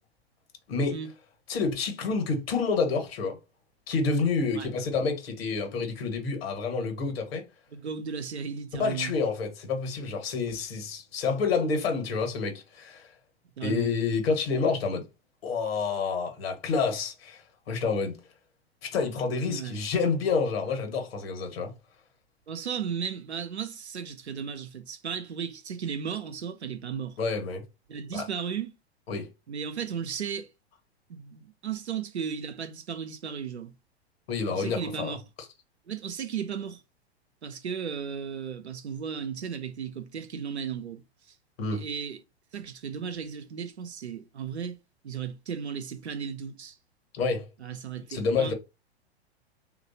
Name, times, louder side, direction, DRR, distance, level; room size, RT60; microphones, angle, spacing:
voice 1, 1.5-3.4 3.9-7.4 8.8-13.1 13.6-15.0 15.4-17.4 17.7-18.2 18.8-21.7 27.2-27.6 28.1-28.2 29.1-29.3 34.3-35.1 41.6-41.8 47.1-47.5 48.1-48.5, left 4 dB, 65° left, 1.3 m, -28 dB
voice 2, 7.7-9.1 13.6-13.9 19.5-19.8 22.5-27.2 27.9-28.7 29.5-30.5 31.1-33.7 34.5-35.2 35.9-36.8 37.4-41.0 41.7-42.2 42.5-44.8 45.0-46.8 47.6-48.5, right 7 dB, 85° right, 0.7 m, -35 dB
3.1 x 2.6 x 2.7 m
figure-of-eight pair, 100°, 32 cm